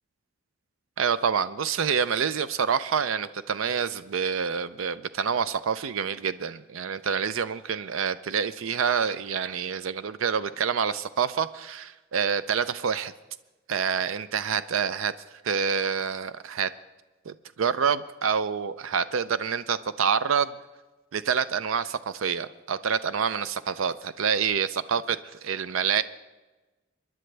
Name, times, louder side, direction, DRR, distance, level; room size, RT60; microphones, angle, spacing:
voice 1, 1.0-13.1 13.7-15.1 15.4-16.7 17.3-20.5 21.1-25.2 25.4-26.0, right 7 dB, 85° right, 14 dB, 0.5 m, -27 dB
24.0 x 10.5 x 3.3 m, 1.1 s
head